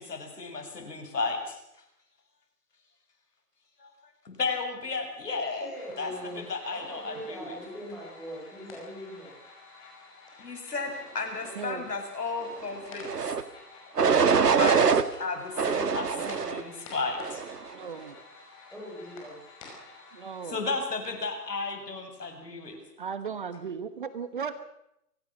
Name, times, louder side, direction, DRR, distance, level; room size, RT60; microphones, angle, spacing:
voice 1, 0.0-1.6 3.8-3.9 4.3-5.7 6.0-7.5 10.4-13.3 14.4-17.6 20.5-22.8, left 4 dB, 80° left, 5 dB, 6.9 m, -34 dB
voice 2, 5.6-9.3 18.7-19.6, equal, ahead, -5 dB, 6.1 m, -42 dB
sound 1, 5.7-20.5, left 3 dB, 20° left, 5.6 m, -50 dB
voice 3, 11.5-11.8 17.7-18.1 20.1-20.7 23.0-24.6, right 6 dB, 30° right, 12 dB, 1.1 m, -36 dB
sound 2, 13.0-13.4 14.0-15.0 15.6-16.6 17.2-17.6, right 6 dB, 75° right, 1.9 m, -24 dB
25.0 x 18.5 x 6.4 m, 0.82 s
hypercardioid pair, 165°, 47 cm